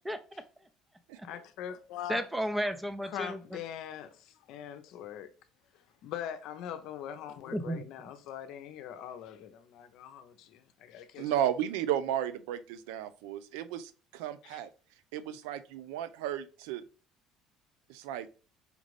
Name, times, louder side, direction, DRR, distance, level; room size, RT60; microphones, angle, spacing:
voice 1, 0.0-0.4 1.2-1.3 2.1-3.6 7.5-7.8, equal, 10° right, 0.6 m, -33 dB
voice 2, 1.2-2.3 3.0-5.3 5.7-11.3 14.4-14.6, left 10 dB, 70° left, 0.6 m, -42 dB
voice 3, 11.2-14.7 15.1-16.8 17.9-18.3, right 10 dB, 85° right, 0.4 m, -34 dB
5.1 x 2.5 x 3.2 m
supercardioid pair, 85°, 0 cm